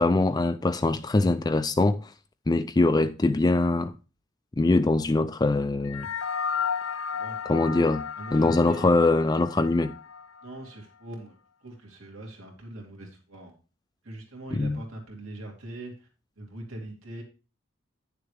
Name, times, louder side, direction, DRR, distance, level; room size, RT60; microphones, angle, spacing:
voice 1, 0.0-2.1 2.5-3.9 4.6-6.1 7.5-8.0 8.3-9.9 14.5-14.8, left 2 dB, 20° left, 0.3 m, -23 dB
sound 1, 5.9-10.5, left 6 dB, 80° left, 0.5 m, -33 dB
voice 2, 8.2-8.9 10.4-11.4 11.6-13.5 14.0-16.1 16.4-17.2, right 1 dB, 85° right, 2.5 m, -41 dB
9.9 x 6.8 x 3.3 m
head